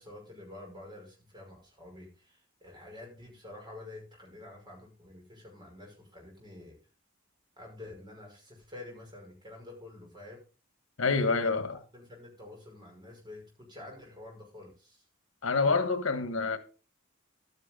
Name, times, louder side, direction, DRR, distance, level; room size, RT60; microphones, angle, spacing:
voice 1, 0.0-6.8 7.6-10.4 11.1-15.0, left 2 dB, 25° right, 5.6 m, -48 dB
voice 2, 11.0-11.7 15.4-16.6, left 4 dB, 90° left, 1.3 m, -27 dB
12.0 x 9.6 x 3.7 m
head